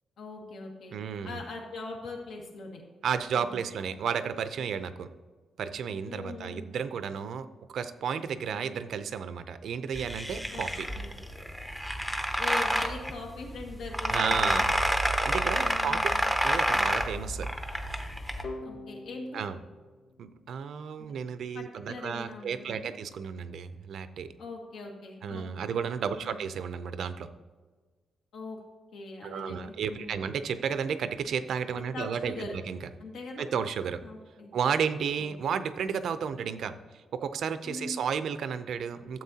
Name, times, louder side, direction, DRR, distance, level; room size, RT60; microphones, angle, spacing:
voice 1, 0.2-1.0 1.2-2.8 3.4-3.6 6.0-6.8 10.5-10.7 10.9-11.1 12.4-14.7 15.6-16.3 18.6-19.4 21.5-22.9 24.4-25.7 26.1-26.5 28.3-28.6 28.9-30.2 31.9-32.6 33.0-33.5 34.0-34.5 35.2-35.5 37.6-38.0, left 3 dB, 75° left, 0 dB, 1.9 m, -41 dB
voice 2, 0.9-1.4 3.0-5.1 5.6-10.9 14.1-14.8 15.2-16.0 16.4-17.5 19.3-19.6 20.2-24.3 25.2-27.3 29.2-32.9 33.4-34.0 34.5-39.2, right 7 dB, 65° right, 11 dB, 0.5 m, -33 dB
sound 1, 9.9-18.4, equal, 5° left, 0.6 m, -29 dB
sound 2, 18.4-21.2, left 2 dB, 55° left, 1.3 m, -45 dB
13.0 x 7.6 x 2.8 m, 1.4 s
wide cardioid pair, 175°, 0 cm